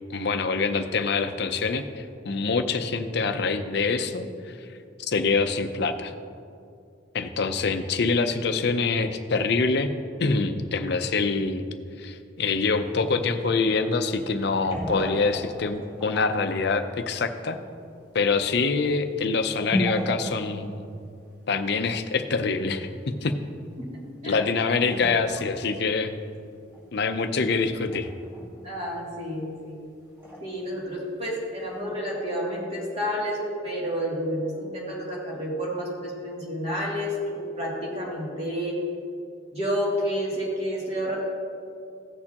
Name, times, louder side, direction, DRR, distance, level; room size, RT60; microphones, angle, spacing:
voice 1, 0.1-4.6 5.1-6.1 7.1-9.9 10.2-17.6 18.1-20.8 21.5-23.4 24.2-26.1 26.9-28.1, left 4 dB, 60° left, 8 dB, 0.6 m, -25 dB
sound 1, 12.7-12.8 14.4-16.8 17.4-17.5 18.0-18.1 18.8-18.9 19.5-20.7 21.0-21.1 22.6-22.7 24.3-24.5 24.9-25.6 25.9-26.0 26.3-26.4 26.7-28.7 29.1-29.4 30.2-30.6 31.3-31.4 31.6-31.7, equal, 10° right, 1.6 m, -34 dB
voice 2, 23.9-24.4 28.6-29.8 30.4-38.8 39.5-41.2, equal, 35° right, -5 dB, 2.5 m, -30 dB
15.5 x 6.6 x 2.9 m, 2.4 s
head